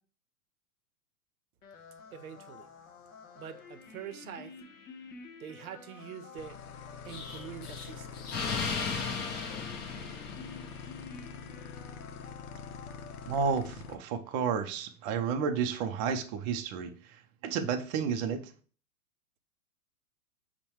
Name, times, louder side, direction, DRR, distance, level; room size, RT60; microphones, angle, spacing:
sound 1, 1.6-13.5, left 5 dB, 60° left, 1.2 m, -50 dB
voice 1, 2.1-2.7 3.3-4.6 5.4-6.6 7.0-8.5, right 9 dB, 70° right, 0.7 m, -45 dB
sound 2, 6.4-14.0, left 6 dB, 75° left, 0.6 m, -45 dB
Explosion, 7.1-10.9, left 5 dB, 25° left, 0.6 m, -36 dB
voice 2, 13.3-17.2 17.4-18.5, right 6 dB, 30° right, 0.4 m, -31 dB
5.4 x 2.2 x 4.4 m
hypercardioid pair, 110°, 45 cm